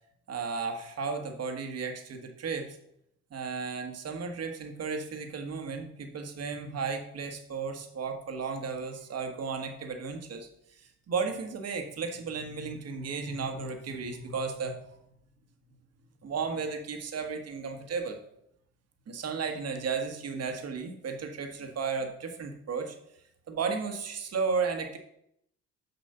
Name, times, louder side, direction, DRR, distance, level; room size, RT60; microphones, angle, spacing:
voice 1, 0.3-2.8 3.3-14.8 16.2-18.2 19.1-22.9 23.5-25.0, right 5 dB, 55° right, 5 dB, 1.5 m, -34 dB
6.8 x 5.3 x 6.7 m, 0.75 s
cardioid pair, 90°, 30 cm